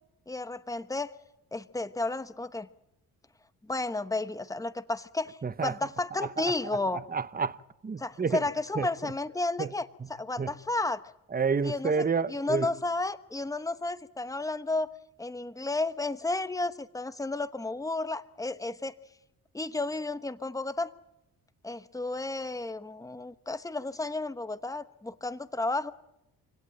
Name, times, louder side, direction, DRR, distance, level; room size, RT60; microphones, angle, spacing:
voice 1, 0.3-1.1 1.5-2.7 3.6-7.0 8.0-11.0 11.6-14.9 15.2-18.9 19.5-20.9 21.6-25.9, left 2 dB, 10° left, 1.0 m, -32 dB
voice 2, 5.4-5.8 6.4-6.5 6.9-8.4 8.8-9.1 9.6-9.7 10.4-10.5 11.3-12.7, right 5 dB, 25° right, 0.9 m, -30 dB
27.0 x 17.5 x 9.0 m
cardioid pair, 100°, 38 cm